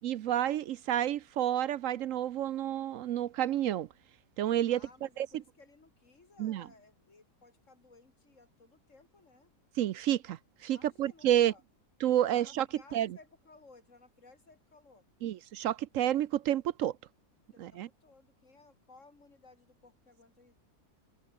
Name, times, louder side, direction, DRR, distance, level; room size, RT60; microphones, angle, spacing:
voice 1, 0.0-3.9 4.4-4.8 5.2-5.3 6.4-6.7 9.8-11.5 12.0-12.7 12.9-13.1 15.2-17.0 17.6-17.9, right 11 dB, 70° right, 0.9 m, -30 dB
voice 2, 4.7-9.5 10.7-11.6 12.2-15.1 17.5-20.6, left 3 dB, 50° left, 3.4 m, -59 dB
omnidirectional pair, 1.6 m